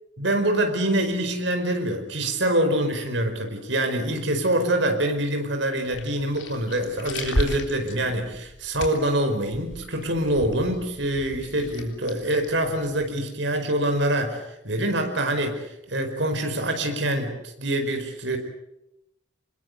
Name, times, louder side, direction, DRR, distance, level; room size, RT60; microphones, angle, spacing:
voice 1, 0.2-17.3 17.6-18.4, right 1 dB, 75° right, 5 dB, 5.0 m, -25 dB
sound 1, 5.8-13.1, left 1 dB, 80° left, 3.7 m, -35 dB
27.5 x 21.0 x 8.1 m, 0.88 s
head